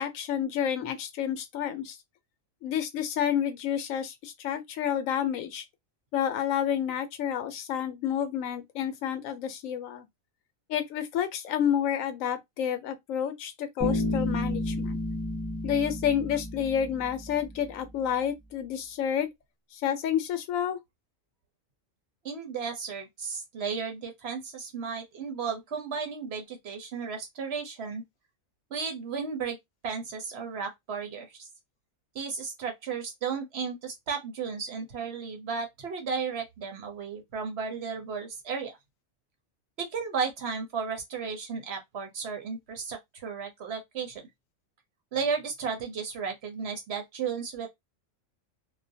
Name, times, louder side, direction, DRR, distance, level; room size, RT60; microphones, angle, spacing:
voice 1, 0.0-2.0 2.6-5.6 6.1-10.1 10.7-15.0 15.6-19.3 19.7-20.8, left 9 dB, 80° left, 1.0 m, -29 dB
Bass guitar, 13.8-17.5, left 1 dB, 5° right, 0.5 m, -31 dB
voice 2, 22.2-28.0 28.7-29.6 29.8-31.5 32.1-38.7 39.8-44.2 45.1-47.7, right 5 dB, 60° right, 0.8 m, -34 dB
2.4 x 2.2 x 2.6 m
omnidirectional pair, 1.4 m